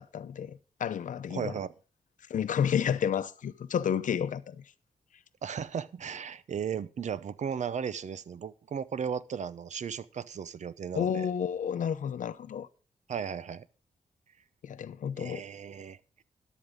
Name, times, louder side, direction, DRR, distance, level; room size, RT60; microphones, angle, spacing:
voice 1, 0.0-1.5 2.3-4.7 10.9-12.7 14.6-15.4, left 8 dB, 75° left, 0.7 m, -31 dB
voice 2, 1.3-1.7 5.4-11.3 13.1-13.7 15.2-16.2, right 7 dB, 65° right, 0.7 m, -36 dB
13.5 x 11.0 x 3.7 m
cardioid pair, 90°, 13 cm